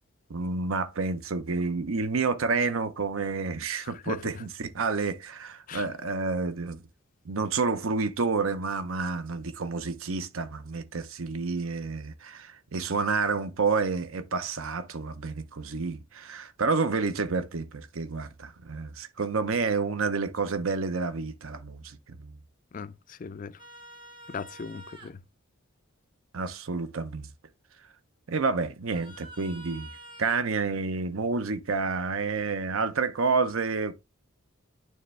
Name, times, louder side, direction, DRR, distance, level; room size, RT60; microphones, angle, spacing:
voice 1, 0.3-6.8 7.2-22.4 26.3-27.3 28.3-29.9 30.2-33.9, right 4 dB, 75° right, 0.7 m, -29 dB
voice 2, 3.8-4.4 5.7-5.9 22.7-23.6 24.3-25.2, left 5 dB, 40° left, 0.3 m, -39 dB
sound 1, 23.6-25.1 28.9-30.5 33.3-33.4, right 1 dB, 25° right, 0.9 m, -48 dB
9.2 x 3.4 x 3.2 m
head